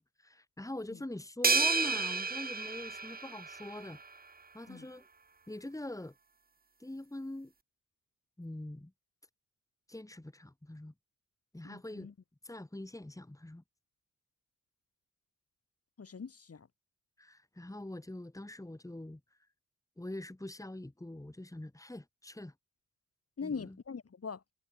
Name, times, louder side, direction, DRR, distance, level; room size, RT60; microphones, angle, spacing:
voice 1, 0.0-4.0 4.5-5.1 5.5-6.1 6.8-7.5 8.4-8.9 9.9-10.9 11.5-12.1 12.4-13.6 17.2-19.2 20.0-22.5 23.4-23.8, left 1 dB, 10° left, 4.2 m, -43 dB
sound 1, 1.4-3.9, right 4 dB, 25° right, 1.7 m, -31 dB
voice 2, 11.6-12.1 16.0-16.7 23.4-24.4, left 5 dB, 45° left, 5.1 m, -42 dB
cardioid pair, 90°, 32 cm